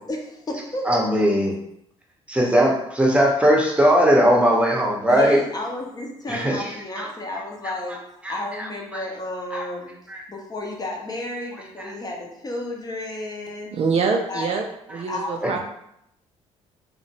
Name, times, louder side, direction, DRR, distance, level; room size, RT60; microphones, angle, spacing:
voice 1, 0.1-0.9 5.1-9.9 10.3-13.8 14.3-14.6 15.1-15.6, left 1 dB, 25° left, 0 dB, 0.7 m, -32 dB
voice 2, 0.8-1.6 2.3-5.4 6.3-7.1 8.2-8.7 8.9-9.0 9.5-9.6 10.1-10.2 11.8-11.9 15.4-15.5, equal, 10° right, -1 dB, 0.8 m, -19 dB
voice 3, 13.7-15.6, right 5 dB, 45° right, 3 dB, 0.4 m, -25 dB
2.8 x 2.1 x 2.8 m, 0.77 s
hypercardioid pair, 55°, 14 cm